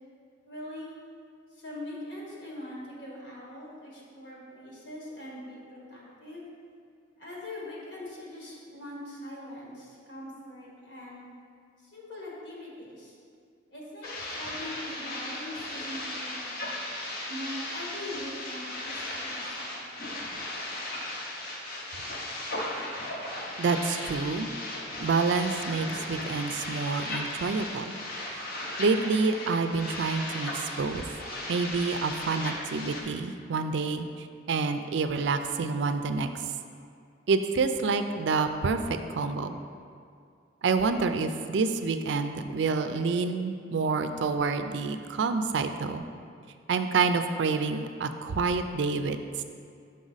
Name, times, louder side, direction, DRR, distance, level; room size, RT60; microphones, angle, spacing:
voice 1, 0.4-1.0 1.5-6.5 7.2-11.2 11.8-13.2 13.7-16.7 17.3-19.8, left 1 dB, 70° left, -4 dB, 1.7 m, -42 dB
sound 1, 14.0-33.0, left 1 dB, 50° left, 0.8 m, -36 dB
voice 2, 23.6-24.5 25.0-27.9 28.8-31.0 31.5-36.3 37.3-38.8 39.1-39.6 40.6-46.0 46.7-49.4, right 4 dB, 70° right, 8 dB, 0.4 m, -28 dB
6.2 x 5.4 x 4.0 m, 2.3 s
head